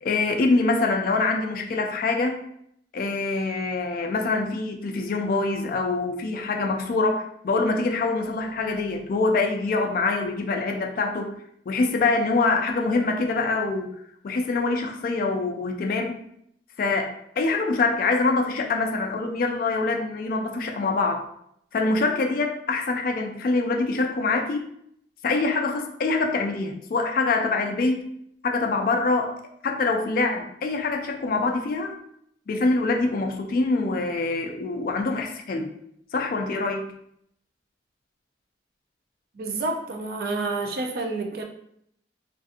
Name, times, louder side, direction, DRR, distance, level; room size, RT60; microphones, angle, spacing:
voice 1, 0.0-2.4 2.9-11.3 11.7-13.9 14.2-16.2 16.8-21.2 21.7-24.6 25.2-28.0 28.4-29.3 29.6-32.0 32.5-35.7 36.1-36.9, left 3 dB, 50° left, 3 dB, 0.3 m, -25 dB
voice 2, 39.3-41.4, right 3 dB, 55° right, 3 dB, 0.4 m, -29 dB
2.5 x 2.5 x 2.4 m, 0.72 s
head